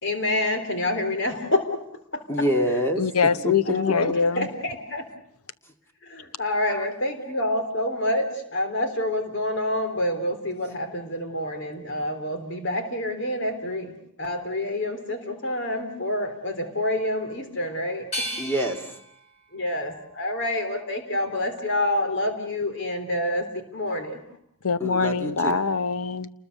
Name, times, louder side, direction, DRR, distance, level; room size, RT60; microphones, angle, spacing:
voice 1, 0.0-1.7 3.7-4.1 4.4-5.0 6.1-18.1 19.5-23.5 23.7-24.2, left 1 dB, 55° left, 7 dB, 3.7 m, -27 dB
voice 2, 2.3-3.0 6.7-6.9 18.4-18.8 24.8-25.6, equal, 10° left, 3 dB, 2.4 m, -26 dB
voice 3, 3.0-4.5 24.6-26.3, left 5 dB, 80° left, 13 dB, 1.0 m, -23 dB
sound 1, 18.1-21.0 21.6-22.4, equal, 30° left, 5.9 m, -38 dB
29.0 x 20.5 x 6.8 m, 0.70 s
head